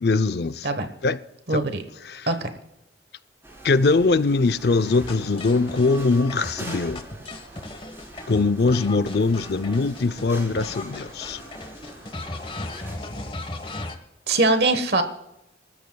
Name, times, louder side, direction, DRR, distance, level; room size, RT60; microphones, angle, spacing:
voice 1, 0.0-0.7 1.0-1.2 1.5-1.6 2.1-2.3 3.6-7.1 8.3-11.4, left 3 dB, 60° left, 0.5 m, -22 dB
voice 2, 1.5-1.8 2.3-2.5 14.3-15.0, right 2 dB, 65° right, 1.2 m, -21 dB
sound 1, 3.4-13.0, right 1 dB, 15° right, 4.0 m, -43 dB
sound 2, 4.9-10.3 10.6-14.0, left 2 dB, 30° left, 1.2 m, -37 dB
27.5 x 13.5 x 2.3 m
head